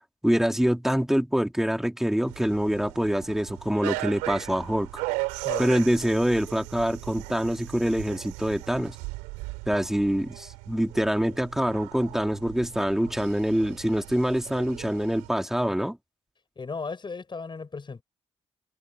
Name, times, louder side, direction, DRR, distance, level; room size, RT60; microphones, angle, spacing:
voice 1, 0.2-4.9 5.6-9.0 9.7-16.0, equal, 5° right, 3.3 m, -25 dB
sound 1, 2.3-15.3, right 25 dB, 85° right, 4.1 m, -37 dB
voice 2, 5.4-5.7 16.6-18.0, left 4 dB, 35° left, 7.4 m, -35 dB
hypercardioid pair, 50°, 13 cm